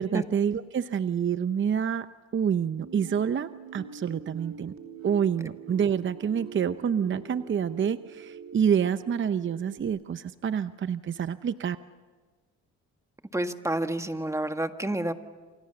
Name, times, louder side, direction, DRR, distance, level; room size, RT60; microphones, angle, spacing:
voice 1, 0.0-2.1 2.3-4.7 5.0-11.8, right 8 dB, 40° right, 12 dB, 0.8 m, -27 dB
sound 1, 2.8-9.8, right 6 dB, 60° right, 4.0 m, -45 dB
voice 2, 13.3-15.1, right 1 dB, 10° right, 7 dB, 1.7 m, -29 dB
28.5 x 27.0 x 7.0 m, 1.4 s
cardioid pair, 90°, 30 cm